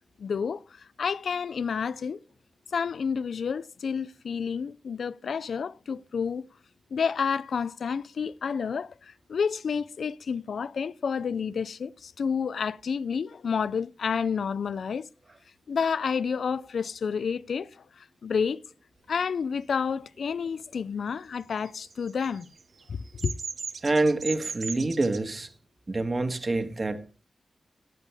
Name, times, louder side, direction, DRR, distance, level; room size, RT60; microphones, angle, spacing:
voice 1, 0.2-2.2 2.7-6.5 6.9-15.1 15.7-18.6 19.1-22.5 22.9-23.3, left 6 dB, 80° left, 0.5 m, -30 dB
Bird vocalization bird call bird song, 21.5-25.2, right 5 dB, 65° right, 1.0 m, -38 dB
voice 2, 23.8-25.5 25.9-27.1, right 2 dB, 35° right, 1.7 m, -26 dB
16.5 x 10.0 x 3.5 m
wide cardioid pair, 105°, 0 cm